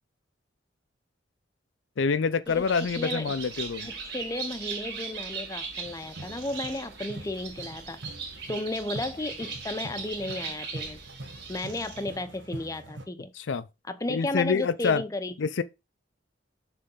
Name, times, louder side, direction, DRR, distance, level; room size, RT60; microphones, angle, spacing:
voice 1, 2.0-3.9 13.4-13.7 14.1-15.0 15.4-15.6, left 5 dB, 80° left, 0.5 m, -26 dB
Bird, 2.5-12.2, right 5 dB, 60° right, 2.2 m, -39 dB
voice 2, 3.0-3.3 3.8-8.0 8.5-11.0 11.5-13.3 13.9-15.4, left 2 dB, 20° left, 0.6 m, -34 dB
sound 1, 5.9-13.1, right 2 dB, 80° right, 1.3 m, -44 dB
6.7 x 3.4 x 5.4 m
head